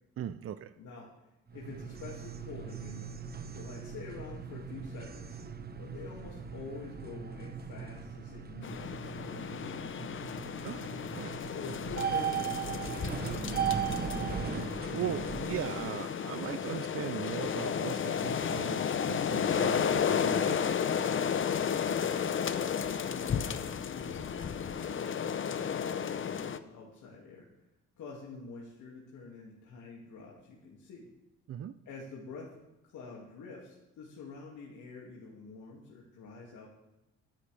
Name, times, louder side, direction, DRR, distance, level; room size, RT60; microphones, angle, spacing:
voice 1, 0.2-0.7 10.6-11.3 14.5-20.6 31.5-31.8, right 10 dB, 50° right, 12 dB, 0.5 m, -39 dB
voice 2, 0.8-1.1 1.5-3.2 3.5-5.4 5.8-10.0 11.5-13.9 21.9-27.5 28.0-31.1 31.9-32.5 32.8-36.7, left 4 dB, 75° left, -4 dB, 2.4 m, -47 dB
sound 1, 1.5-15.9, right 7 dB, 30° right, 1.1 m, -38 dB
sound 2, 8.6-26.6, left 7 dB, 40° left, 0.8 m, -33 dB
22.0 x 10.0 x 3.4 m, 0.96 s
cardioid pair, 90°, 30 cm